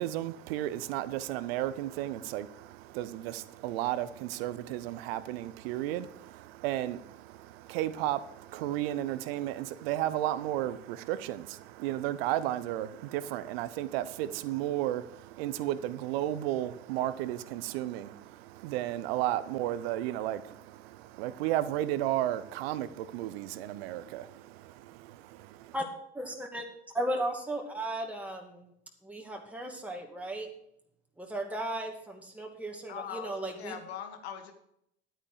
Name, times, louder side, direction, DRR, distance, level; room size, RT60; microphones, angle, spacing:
voice 1, 0.0-25.7, right 13 dB, 65° right, 15 dB, 0.8 m, -33 dB
voice 2, 26.1-26.6 27.0-28.4 29.0-30.5 31.2-33.7, right 1 dB, 5° right, 1 dB, 2.3 m, -35 dB
voice 3, 32.9-34.5, left 8 dB, 75° left, 7 dB, 1.7 m, -41 dB
11.0 x 9.1 x 5.0 m, 0.73 s
hypercardioid pair, 70°, 33 cm